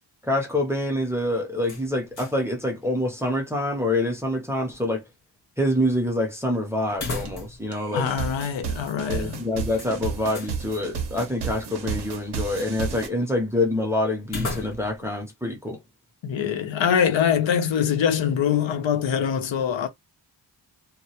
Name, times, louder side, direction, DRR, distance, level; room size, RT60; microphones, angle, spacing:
voice 1, 0.2-5.0 5.6-8.1 9.1-15.8, left 1 dB, 5° right, 0.5 m, -26 dB
sound 1, 1.6-2.5 2.8-2.9 6.9-7.7 8.0-8.1 9.7-10.6 14.2-15.1, left 3 dB, 45° left, 1.0 m, -34 dB
sound 2, 7.2-7.3 7.7-13.1, right 6 dB, 65° right, 0.6 m, -32 dB
voice 2, 7.9-9.4 16.2-19.9, left 8 dB, 85° left, 0.6 m, -23 dB
2.2 x 2.0 x 2.8 m
wide cardioid pair, 160°, 45 cm